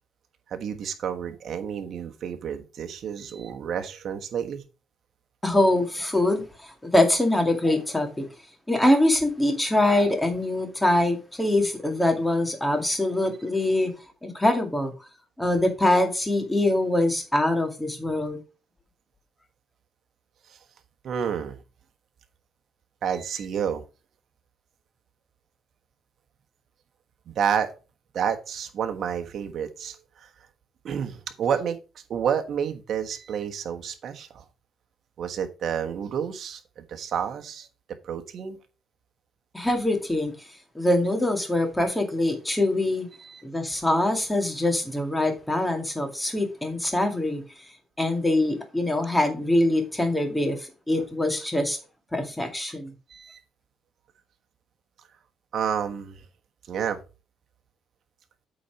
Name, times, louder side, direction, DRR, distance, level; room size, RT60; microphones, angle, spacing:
voice 1, 0.5-4.6 20.5-20.6 21.0-21.6 23.0-23.8 27.3-27.7 28.1-30.3 30.8-34.4 35.2-37.7 38.0-38.6 43.2-43.4 53.1-53.4 55.5-56.2 56.7-57.0, right 8 dB, 55° right, 1.3 m, -30 dB
voice 2, 5.4-8.3 8.7-13.9 14.2-14.9 15.4-18.4 39.5-40.5 40.7-43.1 43.4-47.7 48.0-51.8 52.1-52.9, left 1 dB, 10° left, 2.1 m, -24 dB
8.4 x 4.2 x 5.8 m
cardioid pair, 120°, 0 cm